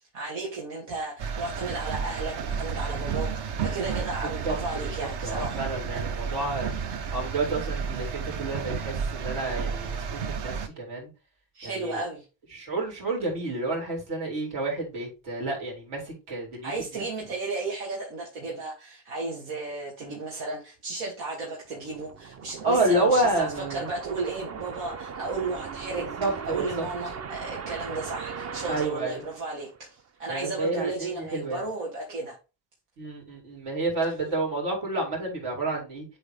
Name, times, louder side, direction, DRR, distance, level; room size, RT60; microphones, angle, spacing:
voice 1, 0.0-5.6 11.5-12.2 16.6-26.1 26.5-29.7 30.2-32.3, right 3 dB, 90° right, 2.6 m, -34 dB
sound 1, 1.2-10.7, right 6 dB, 50° right, 0.9 m, -32 dB
voice 2, 5.2-6.7 7.1-11.1 11.6-12.1 12.5-17.0 22.6-23.9 26.2-26.9 28.7-29.2 30.3-31.6 33.0-36.1, right 2 dB, 70° right, 4.4 m, -29 dB
sound 2, 21.7-30.0, right 6 dB, 30° right, 0.6 m, -39 dB
8.0 x 4.1 x 3.5 m
cardioid pair, 130°, 50 cm